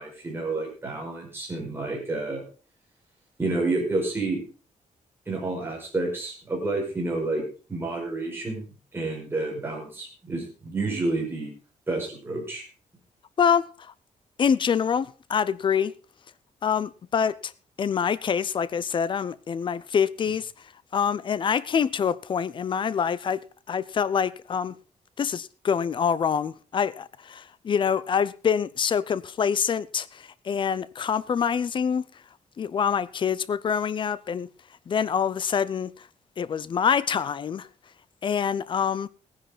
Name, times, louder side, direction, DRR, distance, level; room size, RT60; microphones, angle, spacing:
voice 1, 0.0-2.4 3.4-4.4 5.3-7.4 7.7-8.6 8.9-11.5 11.9-12.6, right 2 dB, 15° right, 5.2 m, -29 dB
voice 2, 13.4-13.9 14.4-15.9 16.6-17.5 17.8-20.5 20.9-24.8 25.2-32.1 32.6-34.5 34.9-36.1 36.4-37.7 38.2-39.1, left 7 dB, 35° left, 0.5 m, -26 dB
17.0 x 10.5 x 3.9 m
wide cardioid pair, 180°, 13 cm